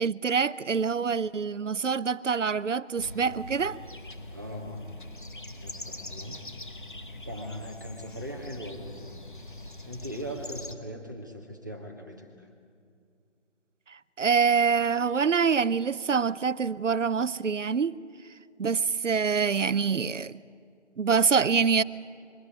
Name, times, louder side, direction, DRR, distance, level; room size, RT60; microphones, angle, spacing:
voice 1, 0.0-3.8 14.2-18.0 18.6-20.4 21.0-21.8, right 6 dB, 85° right, 0.7 m, -25 dB
sound 1, 3.0-10.7, left 1 dB, 45° left, 1.2 m, -42 dB
voice 2, 4.3-4.9 5.4-6.4 7.2-9.0 9.8-12.5, equal, 15° right, 1.2 m, -40 dB
22.5 x 13.0 x 9.6 m
figure-of-eight pair, 175°, 36 cm